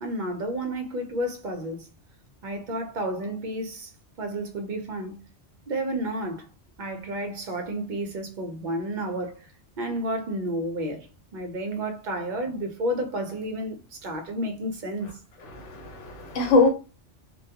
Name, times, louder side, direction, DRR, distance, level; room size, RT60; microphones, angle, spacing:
voice 1, 0.0-1.9 2.4-3.9 4.2-5.2 5.7-6.5 6.8-9.5 9.8-11.1 11.3-15.1, right 1 dB, 55° right, 0.5 m, -31 dB
voice 2, 15.4-16.7, left 3 dB, 80° left, 1.1 m, -22 dB
2.2 x 2.2 x 2.7 m
omnidirectional pair, 1.2 m